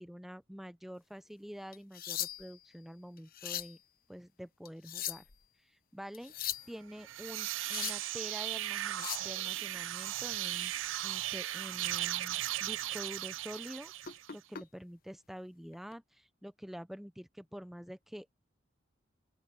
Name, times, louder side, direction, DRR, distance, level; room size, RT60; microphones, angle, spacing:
voice 1, 0.0-3.8 4.1-5.2 5.7-6.3 6.7-10.7 11.0-13.9 14.3-18.3, equal, ahead, 0.5 m, -47 dB
sound 1, 1.7-2.6 3.2-3.8 4.6-5.4 6.1-6.7 7.4-8.1 8.8-9.3 11.4-11.5 12.0-12.3 12.7-12.9 14.0-14.6 15.7-15.9, left 11 dB, 50° left, 0.9 m, -40 dB
sound 2, 6.9-14.4, right 15 dB, 75° right, 0.4 m, -37 dB
open air
head